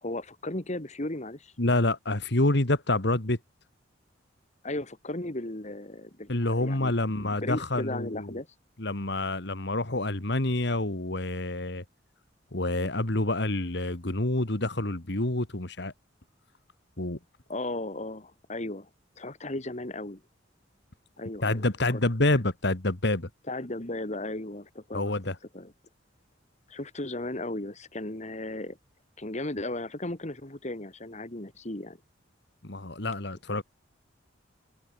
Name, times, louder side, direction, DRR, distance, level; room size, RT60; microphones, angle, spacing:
voice 1, 0.0-1.5 4.6-8.5 17.5-18.9 19.2-20.2 21.2-21.6 21.9-22.0 23.5-25.1 25.5-25.7 26.7-28.8 29.2-32.0, left 1 dB, 35° left, 2.2 m, -36 dB
voice 2, 1.6-3.4 6.3-8.4 8.8-11.8 12.5-15.9 17.0-17.2 21.4-23.3 24.9-25.4 32.6-33.6, left 2 dB, 60° left, 2.2 m, -27 dB
head